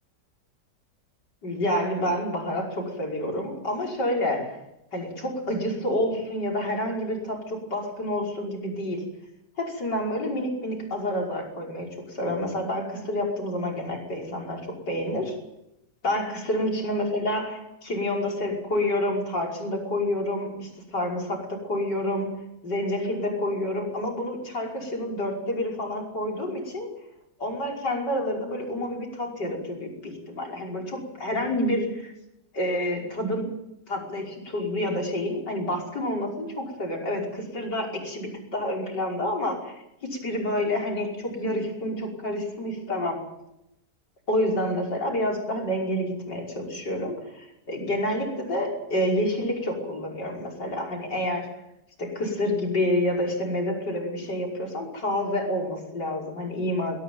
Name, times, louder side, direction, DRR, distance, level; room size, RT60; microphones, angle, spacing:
voice 1, 1.4-4.6 4.9-9.1 9.6-15.4 16.0-26.9 27.4-32.1 32.5-33.5 33.9-39.7 40.0-43.2 44.3-51.5 52.0-57.0, left 1 dB, 85° left, 0 dB, 6.2 m, -28 dB
23.0 x 16.5 x 9.3 m, 0.85 s
omnidirectional pair, 1.8 m